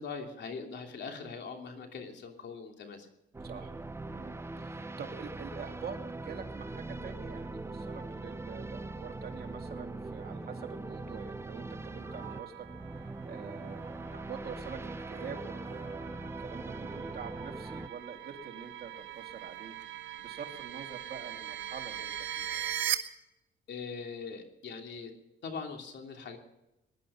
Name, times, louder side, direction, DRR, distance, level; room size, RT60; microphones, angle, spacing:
voice 1, 0.0-3.1 23.7-25.1 25.4-26.4, left 5 dB, 60° left, 3 dB, 2.9 m, -41 dB
sound 1, 3.3-17.9, right 2 dB, 15° right, 0.7 m, -41 dB
voice 2, 3.4-3.7 4.0-22.8, right 6 dB, 50° right, 3 dB, 2.6 m, -46 dB
sound 2, 12.0-22.9, right 11 dB, 75° right, 1.3 m, -41 dB
19.5 x 11.5 x 5.6 m, 0.91 s
cardioid pair, 90°, 20 cm